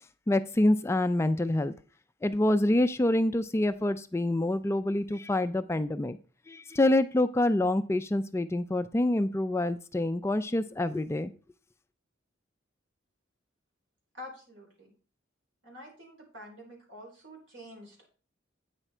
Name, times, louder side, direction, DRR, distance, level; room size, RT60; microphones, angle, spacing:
voice 1, 0.3-1.7 2.2-6.2 6.5-11.3, left 1 dB, 15° left, 10 dB, 0.3 m, -26 dB
voice 2, 14.1-14.9 15.6-18.1, left 1 dB, 70° right, 0 dB, 4.3 m, -47 dB
9.0 x 6.0 x 4.4 m, 0.37 s
head